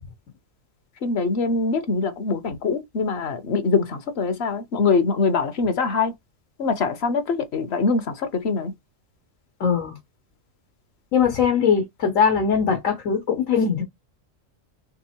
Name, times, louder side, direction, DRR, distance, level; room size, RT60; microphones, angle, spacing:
voice 1, 1.0-6.1 6.6-8.7, left 4 dB, 60° left, 0.9 m, -23 dB
voice 2, 9.6-10.0 11.1-13.8, left 6 dB, 90° left, 1.4 m, -21 dB
3.6 x 3.2 x 4.3 m
omnidirectional pair, 1.3 m